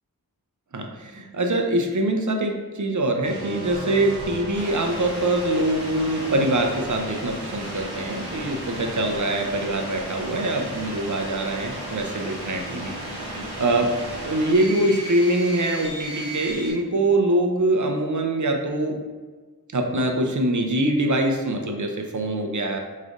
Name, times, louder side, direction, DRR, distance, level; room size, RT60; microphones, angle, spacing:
voice 1, 0.7-19.0 19.7-22.8, right 1 dB, 50° right, 3 dB, 0.6 m, -24 dB
sound 1, 3.2-16.7, right 1 dB, 90° right, 1.2 m, -34 dB
5.0 x 3.2 x 2.5 m, 1.4 s
wide cardioid pair, 65°, 38 cm